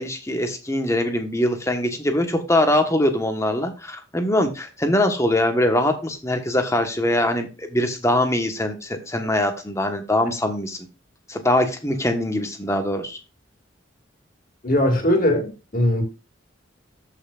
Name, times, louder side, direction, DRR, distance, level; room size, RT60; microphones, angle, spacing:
voice 1, 0.0-10.8 11.3-13.2, left 1 dB, 15° left, 1.3 m, -22 dB
voice 2, 14.6-16.0, left 1 dB, 45° left, 2.4 m, -20 dB
13.5 x 5.8 x 2.5 m
head